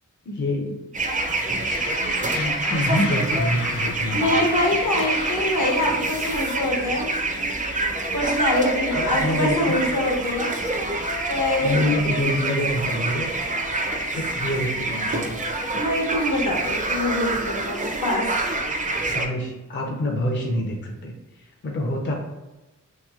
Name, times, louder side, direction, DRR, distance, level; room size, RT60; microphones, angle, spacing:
voice 1, 0.3-0.8 2.0-4.4 8.9-9.8 11.6-13.3 14.1-15.4 19.1-22.1, left 1 dB, 35° left, 0 dB, 0.5 m, -26 dB
sound 1, 0.9-19.3, right 2 dB, 25° right, 0.4 m, -26 dB
sound 2, 1.6-6.4, left 3 dB, 90° left, 0.5 m, -35 dB
voice 2, 4.1-7.1 8.1-10.5 11.3-11.9 15.8-18.3, left 1 dB, 70° left, -1 dB, 0.9 m, -24 dB
2.9 x 2.9 x 2.3 m, 1.1 s
wide cardioid pair, 60°, 32 cm